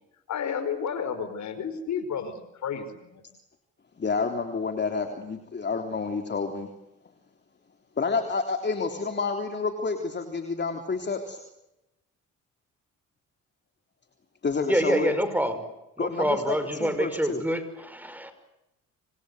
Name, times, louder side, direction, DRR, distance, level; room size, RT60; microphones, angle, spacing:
voice 1, 0.3-3.2, left 7 dB, 70° left, 12 dB, 5.1 m, -32 dB
voice 2, 4.0-6.7 8.0-11.4 14.4-15.1 16.0-17.4, left 4 dB, 35° left, 5 dB, 3.5 m, -29 dB
voice 3, 14.6-15.6 16.0-18.3, right 1 dB, 5° right, 10 dB, 5.8 m, -26 dB
28.0 x 26.0 x 8.2 m, 0.89 s
cardioid pair, 90°, 30 cm